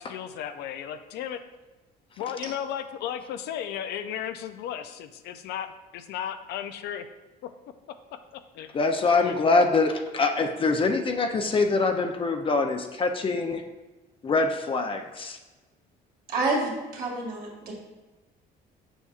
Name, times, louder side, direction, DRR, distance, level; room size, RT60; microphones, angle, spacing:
voice 1, 0.0-1.4 2.2-7.1 7.4-7.5 7.9-8.7 9.2-9.3, left 9 dB, 80° left, 10 dB, 0.4 m, -35 dB
voice 2, 8.7-13.6 14.2-15.4, left 3 dB, 30° left, 5 dB, 0.5 m, -24 dB
voice 3, 16.3-17.7, right 2 dB, 60° right, -2 dB, 2.0 m, -28 dB
7.0 x 5.6 x 2.4 m, 1.2 s
cardioid pair, 110°, 17 cm